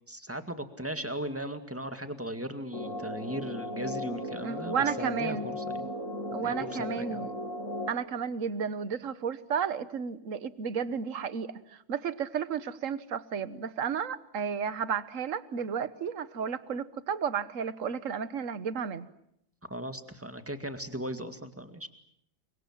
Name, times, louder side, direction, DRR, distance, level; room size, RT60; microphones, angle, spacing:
voice 1, 0.1-5.9 6.3-7.2 19.7-21.9, right 1 dB, 5° right, 8 dB, 2.0 m, -37 dB
sound 1, 2.7-7.9, left 1 dB, 40° left, 3.2 m, -36 dB
voice 2, 4.4-5.5 6.3-7.3 7.9-19.1, right 7 dB, 45° right, 14 dB, 1.4 m, -33 dB
30.0 x 24.5 x 7.5 m, 0.75 s
omnidirectional pair, 2.1 m